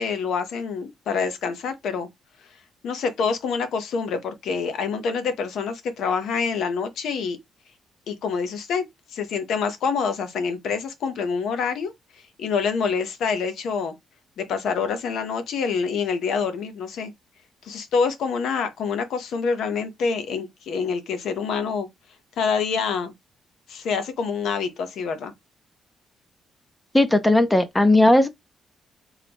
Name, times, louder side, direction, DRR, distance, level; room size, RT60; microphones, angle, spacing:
voice 1, 0.0-2.1 2.8-7.4 8.1-8.8 9.1-11.9 12.4-13.9 14.4-17.1 17.6-21.9 22.4-23.1 23.7-25.3, left 5 dB, 70° left, 0.8 m, -26 dB
voice 2, 26.9-28.3, left 1 dB, 10° left, 0.4 m, -17 dB
3.7 x 2.9 x 3.5 m
cardioid pair, 170°, 0 cm